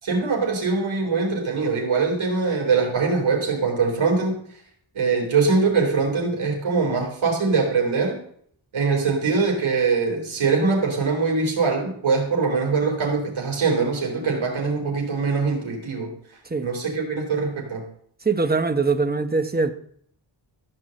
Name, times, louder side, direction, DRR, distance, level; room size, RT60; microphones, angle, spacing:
voice 1, 0.0-4.4 4.9-8.2 8.7-16.1 16.6-17.8, right 4 dB, 85° right, 3.7 m, -22 dB
voice 2, 18.2-19.7, right 4 dB, 20° right, 1.0 m, -22 dB
14.5 x 4.9 x 7.6 m
wide cardioid pair, 115°, 47 cm